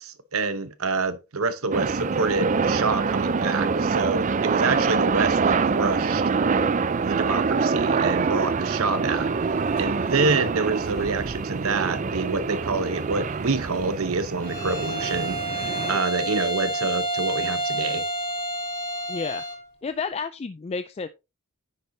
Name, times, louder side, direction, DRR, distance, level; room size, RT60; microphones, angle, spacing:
voice 1, 0.0-6.3 7.0-18.0, right 4 dB, 70° right, 0.9 m, -27 dB
sound 1, 1.7-16.0, right 5 dB, 35° right, 0.4 m, -25 dB
sound 2, 9.2-14.6, left 2 dB, 70° left, 4.8 m, -47 dB
Bowed string instrument, 14.4-19.6, right 1 dB, 10° left, 3.8 m, -29 dB
voice 2, 19.1-19.4 19.8-21.1, left 5 dB, 30° left, 0.3 m, -30 dB
9.7 x 6.8 x 2.7 m
head